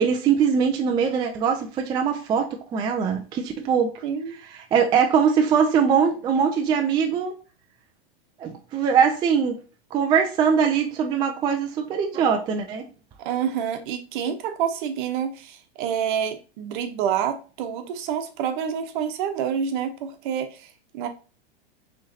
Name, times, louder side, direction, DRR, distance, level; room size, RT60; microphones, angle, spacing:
voice 1, 0.0-3.9 4.7-7.4 8.4-9.6 9.9-12.9, right 7 dB, 15° right, 0.3 m, -22 dB
voice 2, 4.0-4.4 13.2-21.1, right 8 dB, 55° right, 0.9 m, -28 dB
6.2 x 3.2 x 2.7 m
hypercardioid pair, 130°, 30 cm